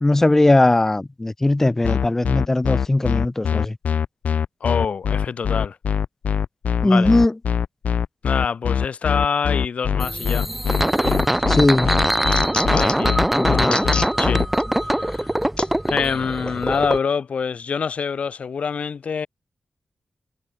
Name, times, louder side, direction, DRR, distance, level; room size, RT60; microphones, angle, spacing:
voice 1, 0.0-3.8 6.8-7.3 11.5-11.9 13.3-14.0, left 2 dB, 15° left, 0.4 m, -19 dB
sound 1, 1.8-14.4, left 7 dB, 90° left, 1.5 m, -22 dB
voice 2, 4.6-5.8 6.8-7.1 8.2-10.5 12.7-13.9 14.2-14.5 14.8-15.4 15.9-19.3, left 6 dB, 60° left, 0.6 m, -26 dB
sound 2, 10.0-17.0, right 1 dB, 5° right, 1.3 m, -22 dB
sound 3, 11.0-11.5 11.8-13.1 13.6-14.1 14.6-14.7 15.6-15.7 16.5-16.6, left 4 dB, 40° left, 1.3 m, -30 dB
wide cardioid pair, 125°, 2 cm